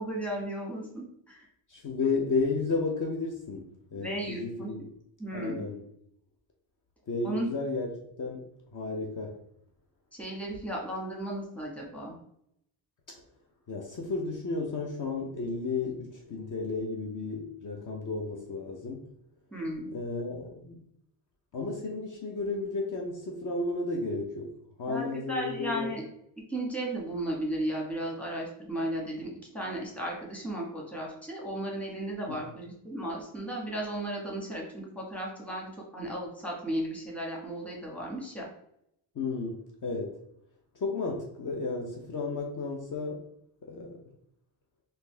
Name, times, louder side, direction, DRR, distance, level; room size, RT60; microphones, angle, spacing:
voice 1, 0.0-1.4 4.0-4.7 5.2-5.7 7.2-7.5 10.1-12.1 19.5-19.9 24.9-26.0 26.5-38.5, right 1 dB, 5° left, -3 dB, 1.3 m, -35 dB
voice 2, 1.7-4.9 5.3-5.8 7.1-7.9 8.2-8.5 8.7-9.4 13.7-19.1 19.9-20.9 21.5-25.9 39.1-40.2 40.7-43.2 43.6-44.0, left 3 dB, 45° left, 0 dB, 0.8 m, -33 dB
3.9 x 2.7 x 3.3 m, 0.72 s
cardioid pair, 110°, 44 cm